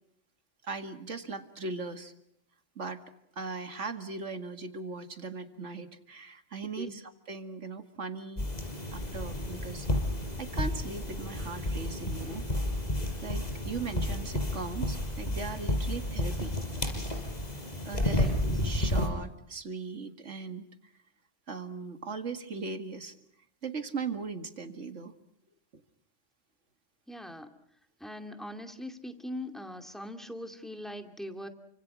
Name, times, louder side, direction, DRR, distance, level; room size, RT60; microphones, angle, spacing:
voice 1, 0.6-2.1 2.8-3.0 3.4-8.5 8.9-9.9 10.4-12.4 13.2-16.5 17.9-18.3 18.6-20.7 21.5-23.2 23.6-25.1 25.7-25.8, right 4 dB, 70° right, 7 dB, 2.3 m, -39 dB
sound 1, 8.4-19.1, left 1 dB, 35° left, 5.0 m, -31 dB
voice 2, 27.1-27.5 28.0-31.5, left 1 dB, ahead, 6 dB, 2.4 m, -41 dB
29.5 x 25.5 x 6.2 m, 0.74 s
omnidirectional pair, 1.3 m